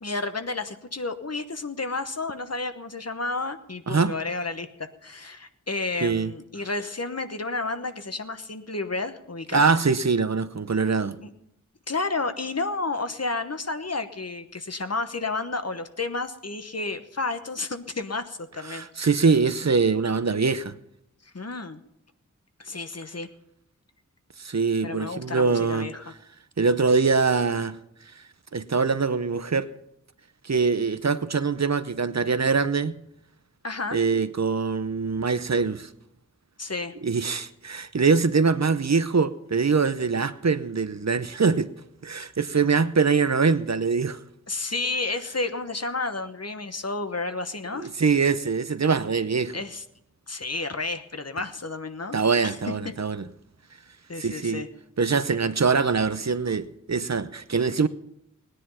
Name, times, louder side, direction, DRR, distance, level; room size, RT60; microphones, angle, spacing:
voice 1, 0.0-9.7 11.2-11.3 11.9-19.1 21.2-21.8 22.6-23.3 24.8-26.1 33.6-34.0 36.6-36.9 44.5-47.9 49.5-49.8 50.3-52.2 52.4-52.6 54.1-54.7, left 3 dB, 50° left, 1.1 m, -31 dB
voice 2, 6.0-6.3 9.5-11.2 18.7-20.8 24.4-25.9 26.6-27.8 28.5-29.7 30.4-32.9 33.9-35.9 37.0-41.7 42.0-44.2 47.7-49.6 52.1-53.2 54.2-54.6 55.0-57.9, right 5 dB, 55° right, 0.7 m, -23 dB
17.5 x 10.0 x 5.7 m
wide cardioid pair, 50°, 32 cm